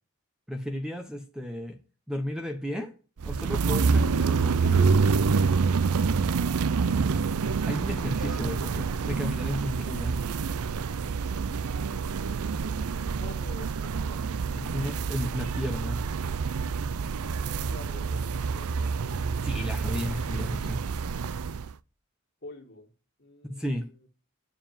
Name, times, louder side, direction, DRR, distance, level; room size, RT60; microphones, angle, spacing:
voice 1, 0.5-1.8 2.1-2.9 3.2-4.9 7.7-10.2 14.5-16.0 19.4-20.8 23.4-23.9, left 1 dB, 5° right, 5 dB, 1.0 m, -33 dB
sound 1, 3.2-21.7, right 5 dB, 90° right, 0.5 m, -27 dB
voice 2, 12.3-14.2 17.6-19.2 22.4-22.9 23.2-24.1, left 2 dB, 50° left, 2 dB, 2.4 m, -48 dB
9.8 x 7.2 x 9.1 m, 0.38 s
head